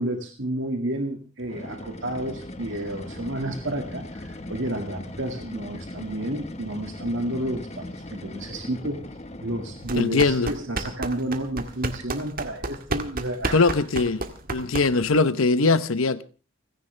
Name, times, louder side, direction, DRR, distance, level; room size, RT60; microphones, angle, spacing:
voice 1, 0.0-9.1 9.4-13.7, right 1 dB, 60° right, 2.0 m, -31 dB
sound 1, 1.4-10.2, left 1 dB, 30° left, 1.3 m, -39 dB
sound 2, 9.8-15.2, right 2 dB, 45° right, 1.7 m, -32 dB
voice 2, 9.9-10.5 13.5-16.2, left 3 dB, 75° left, 0.9 m, -21 dB
30.0 x 10.5 x 3.3 m
head